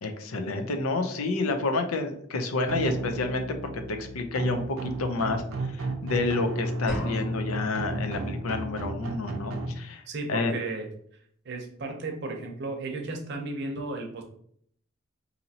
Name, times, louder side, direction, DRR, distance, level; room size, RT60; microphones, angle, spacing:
voice 1, 0.0-10.0 10.3-10.5, left 3 dB, 85° left, 6 dB, 0.5 m, -29 dB
sound 1, 2.7-9.7, right 2 dB, 90° right, 0.6 m, -33 dB
sound 2, 6.9-7.9, left 1 dB, 50° left, 1.4 m, -36 dB
voice 2, 10.1-10.9 11.4-14.2, right 2 dB, 55° right, 3 dB, 0.7 m, -34 dB
4.1 x 2.7 x 2.8 m, 0.65 s
head